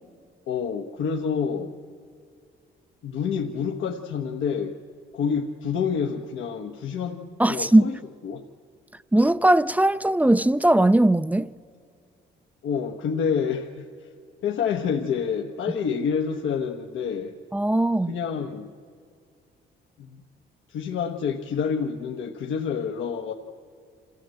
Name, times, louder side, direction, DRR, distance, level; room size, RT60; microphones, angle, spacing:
voice 1, 0.5-1.8 3.0-4.8 5.1-7.2 7.5-8.0 8.2-8.4 12.6-14.1 14.4-17.4 18.1-18.7 20.0-20.2 20.7-23.3, left 6 dB, 80° left, 1.2 m, -28 dB
voice 2, 7.4-7.9 9.1-11.5 17.5-18.1, right 1 dB, 10° right, 0.4 m, -19 dB
27.0 x 15.0 x 7.8 m
cardioid pair, 90°, 20 cm